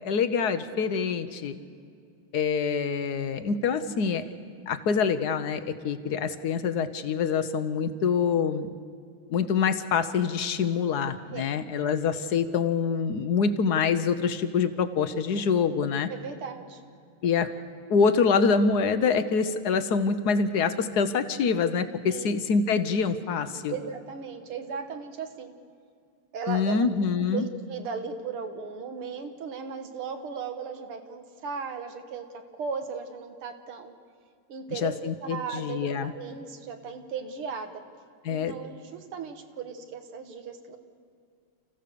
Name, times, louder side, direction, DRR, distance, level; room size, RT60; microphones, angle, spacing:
voice 1, 0.0-1.5 2.3-4.2 4.7-8.7 9.3-16.1 17.2-17.5 17.9-23.7 26.5-27.5 34.8-36.1 38.2-38.5, left 5 dB, 60° left, 11 dB, 1.1 m, -25 dB
voice 2, 16.1-16.8 22.0-22.3 23.7-25.5 26.3-26.8 27.2-32.3 32.6-33.9 34.5-34.9 35.2-37.8 38.3-40.8, right 6 dB, 80° right, 6 dB, 2.3 m, -36 dB
29.0 x 15.0 x 6.8 m, 2.3 s
omnidirectional pair, 2.4 m